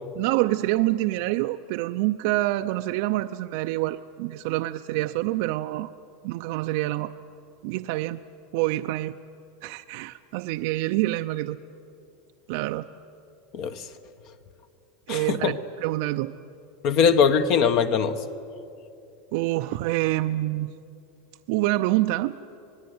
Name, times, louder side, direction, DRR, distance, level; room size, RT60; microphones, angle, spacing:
voice 1, 0.1-5.9 6.2-7.1 7.6-8.2 8.5-9.2 9.6-11.6 12.5-12.9 15.1-16.3 19.3-20.7 21.5-22.4, right 17 dB, 60° right, 7 dB, 0.6 m, -26 dB
voice 2, 13.5-13.9 15.1-15.6 16.8-18.2, left 6 dB, 45° left, 10 dB, 1.1 m, -21 dB
26.5 x 20.0 x 9.6 m, 2.6 s
supercardioid pair, 160°, 0 cm